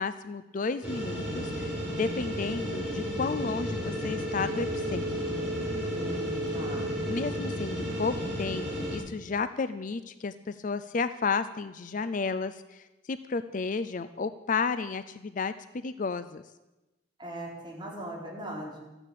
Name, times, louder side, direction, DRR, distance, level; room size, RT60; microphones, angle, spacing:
voice 1, 0.0-5.1 7.1-16.4, left 4 dB, 40° left, 12 dB, 0.4 m, -32 dB
sound 1, 0.8-9.0, equal, 5° right, 5.5 m, -32 dB
voice 2, 5.8-7.0 17.2-18.8, right 1 dB, 25° right, -4 dB, 4.3 m, -39 dB
13.5 x 9.8 x 8.5 m, 1.0 s
head